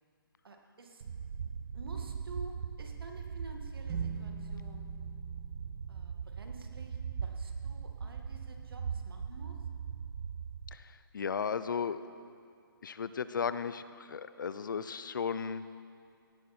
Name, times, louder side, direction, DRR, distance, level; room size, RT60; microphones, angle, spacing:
voice 1, 0.4-1.0 1.4-4.9 5.9-9.6, right 2 dB, 70° right, 3 dB, 2.1 m, -51 dB
sound 1, 1.0-10.8, right 6 dB, 45° right, 0.6 m, -40 dB
sound 2, 3.9-7.4, right 5 dB, 15° right, 0.9 m, -48 dB
voice 2, 10.7-12.0 12.8-15.6, left 6 dB, 55° left, 13 dB, 0.5 m, -35 dB
17.5 x 11.0 x 4.3 m, 2.3 s
hypercardioid pair, 165°, 13 cm